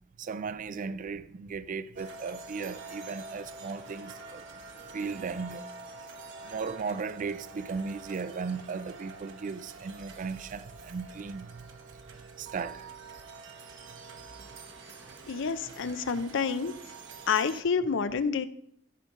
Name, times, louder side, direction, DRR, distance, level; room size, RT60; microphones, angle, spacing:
voice 1, 0.2-4.5 4.9-5.7 6.4-11.7 12.4-12.9, right 5 dB, 40° right, 0.4 m, -36 dB
sound 1, 2.0-17.6, right 3 dB, 65° right, 1.1 m, -46 dB
voice 2, 15.3-16.7 17.3-18.5, left 5 dB, 65° left, 0.5 m, -28 dB
14.5 x 5.3 x 3.7 m
head